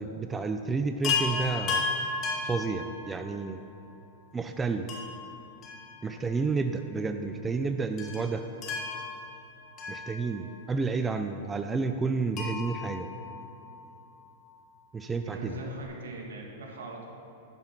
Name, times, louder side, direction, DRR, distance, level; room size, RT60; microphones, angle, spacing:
voice 1, 0.0-1.8 2.4-3.6 4.3-4.9 6.0-8.4 9.9-13.1 14.9-15.5, right 4 dB, 15° right, 7 dB, 0.4 m, -30 dB
Chime, 1.0-3.5 4.9-6.4 6.7-6.8 8.0-10.7 12.3-14.0 15.5-15.6 15.8-15.9, left 4 dB, 35° left, 1.8 m, -34 dB
voice 2, 15.2-17.1, right 1 dB, 75° right, -1 dB, 2.0 m, -40 dB
11.0 x 5.8 x 6.0 m, 2.8 s
hypercardioid pair, 115°, 0 cm